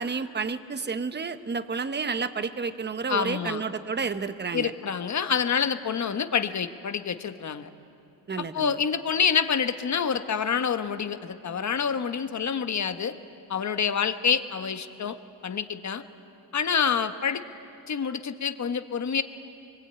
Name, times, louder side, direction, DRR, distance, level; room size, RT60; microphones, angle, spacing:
voice 1, 0.0-4.7 8.3-8.8, right 5 dB, 25° right, 11 dB, 1.0 m, -30 dB
voice 2, 3.1-3.6 4.5-7.7 8.4-13.1 13.5-15.2 15.4-16.0 16.5-17.4 17.9-19.2, left 7 dB, 40° left, 10 dB, 1.1 m, -27 dB
24.5 x 22.5 x 8.7 m, 2.6 s
cardioid pair, 105°, 44 cm